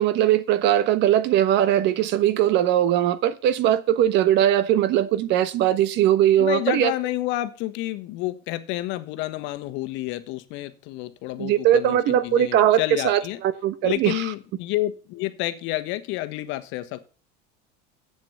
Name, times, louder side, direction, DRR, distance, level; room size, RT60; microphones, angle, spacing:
voice 1, 0.0-6.9 11.4-14.2, right 11 dB, 55° right, 1.2 m, -20 dB
voice 2, 6.4-13.4 13.8-17.0, left 16 dB, 65° left, 1.3 m, -29 dB
8.0 x 7.5 x 7.0 m
supercardioid pair, 115°, 21 cm